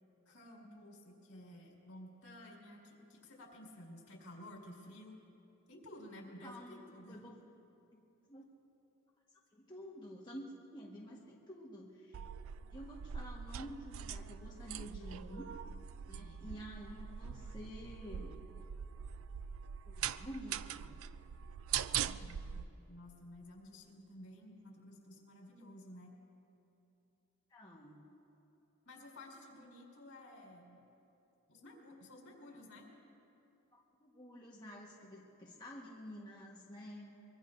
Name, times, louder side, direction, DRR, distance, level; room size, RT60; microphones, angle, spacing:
voice 1, 0.3-5.2 5.7-7.3 16.2-16.5 22.0-26.1 28.8-30.8 31.5-32.9, left 1 dB, 70° left, -2 dB, 4.2 m, -53 dB
voice 2, 6.4-6.8 7.1-7.4 7.9-8.0 8.3-8.5 9.3-12.3 12.7-15.5 16.0-18.3 19.8-20.9 27.5-28.1 33.7-37.1, equal, 20° left, -4 dB, 1.3 m, -50 dB
sound 1, 12.1-22.6, right 9 dB, 65° right, 0.4 m, -42 dB
24.0 x 23.0 x 2.6 m, 2.8 s
head